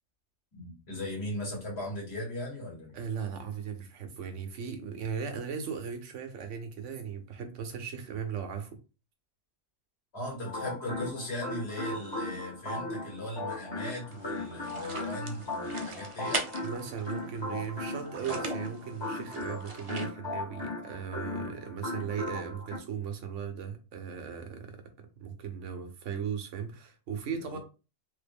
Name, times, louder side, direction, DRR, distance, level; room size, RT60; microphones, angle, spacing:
voice 1, 0.5-3.0 10.1-16.4 18.1-18.4 27.3-27.6, left 1 dB, 60° left, 1.7 m, -38 dB
voice 2, 2.9-8.7 16.6-24.8 25.2-27.6, right 7 dB, 85° right, 1.1 m, -37 dB
sound 1, 10.4-22.8, left 2 dB, 25° left, 0.8 m, -37 dB
sound 2, 14.1-20.1, right 3 dB, 45° right, 0.4 m, -41 dB
3.4 x 2.1 x 3.4 m
omnidirectional pair, 1.2 m